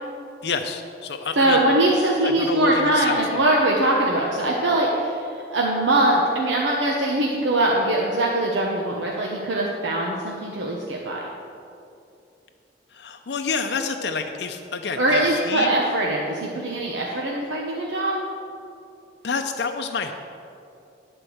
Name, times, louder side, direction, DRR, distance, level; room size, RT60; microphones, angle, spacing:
voice 1, 0.4-1.6 2.2-3.4 12.9-15.7 16.5-16.7 19.2-20.1, left 5 dB, 70° left, 5 dB, 0.5 m, -29 dB
voice 2, 1.4-11.2 15.0-18.2, right 1 dB, 90° right, -2 dB, 1.0 m, -22 dB
11.0 x 4.4 x 7.8 m, 2.6 s
head